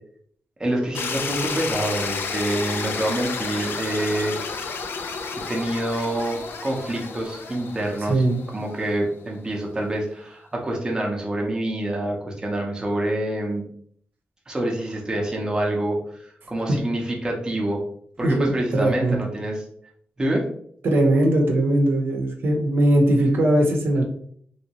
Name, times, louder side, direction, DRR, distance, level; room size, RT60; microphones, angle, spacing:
voice 1, 0.6-4.4 5.5-8.2 8.5-13.6 14.5-17.8 18.2-19.6 20.2-20.5, right 1 dB, 20° right, -1 dB, 0.6 m, -26 dB
sound 1, 0.9-9.0, left 4 dB, 75° left, 0.4 m, -31 dB
voice 2, 8.1-8.4 18.2-19.3 20.8-24.0, right 1 dB, 70° right, 1 dB, 0.7 m, -20 dB
3.1 x 2.7 x 2.9 m, 0.63 s
wide cardioid pair, 165°, 4 cm